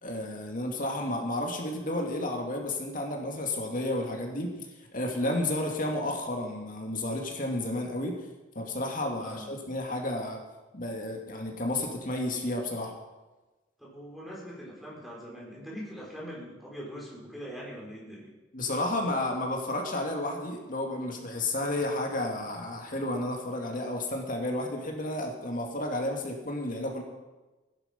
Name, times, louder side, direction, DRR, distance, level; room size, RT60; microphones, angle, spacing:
voice 1, 0.0-4.5 4.9-8.2 8.6-10.4 10.7-12.9 18.5-27.0, left 1 dB, 45° left, 2 dB, 2.3 m, -32 dB
voice 2, 9.2-9.5 13.8-18.3, equal, ahead, -5 dB, 4.9 m, -42 dB
16.0 x 11.0 x 5.3 m, 1.1 s
head